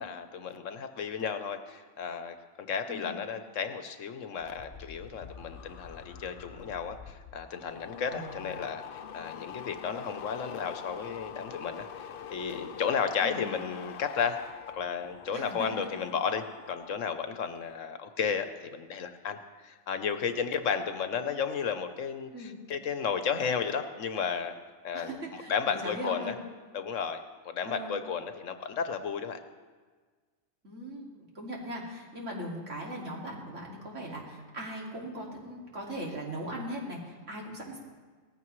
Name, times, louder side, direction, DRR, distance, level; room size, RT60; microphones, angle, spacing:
voice 1, 0.0-14.4 14.7-24.5 24.8-26.4 26.7-29.4, left 6 dB, 70° left, 8 dB, 1.2 m, -33 dB
sound 1, 4.4-17.0 17.3-17.8, left 8 dB, 55° left, 0.7 m, -45 dB
voice 2, 8.1-8.4 13.2-13.5 15.3-15.7 22.3-22.6 24.9-26.4 27.6-27.9 30.6-37.8, equal, 65° right, -3 dB, 2.8 m, -39 dB
18.5 x 14.5 x 3.2 m, 1.5 s
omnidirectional pair, 1.4 m